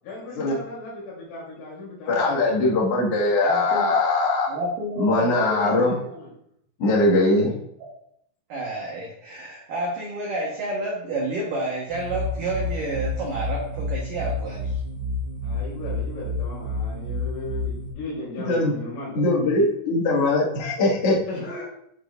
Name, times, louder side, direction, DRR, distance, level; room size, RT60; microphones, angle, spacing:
voice 1, 0.0-2.8 5.2-6.3 15.4-19.1 21.3-21.6, left 2 dB, 85° left, -6 dB, 5.9 m, -37 dB
voice 2, 2.1-4.5 5.0-5.9 6.8-7.5 18.5-18.7 19.1-21.2, left 2 dB, 60° left, -5 dB, 1.5 m, -21 dB
voice 3, 3.4-3.9 4.5-5.7 7.8-7.9 8.5-14.8, right 1 dB, 90° right, -3 dB, 1.8 m, -30 dB
sound 1, 11.9-17.9, left 2 dB, 55° right, 3.8 m, -29 dB
11.0 x 5.2 x 2.5 m, 0.73 s
omnidirectional pair, 5.6 m